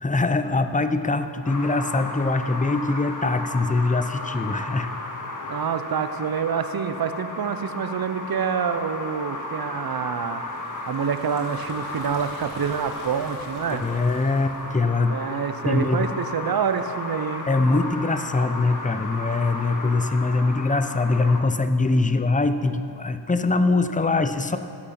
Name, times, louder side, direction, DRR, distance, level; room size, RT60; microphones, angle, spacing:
voice 1, 0.0-4.9 13.7-15.1 15.6-16.1 17.5-24.6, left 3 dB, 15° left, 10 dB, 0.7 m, -23 dB
sound 1, 1.4-21.4, left 2 dB, 40° left, 1.5 m, -34 dB
voice 2, 5.5-10.4 10.9-13.8 15.1-17.5, right 7 dB, 50° right, 11 dB, 0.8 m, -27 dB
Liquid, 10.2-14.9, left 2 dB, 85° left, 2.5 m, -47 dB
16.0 x 6.2 x 5.9 m, 2.7 s
cardioid pair, 45°, 46 cm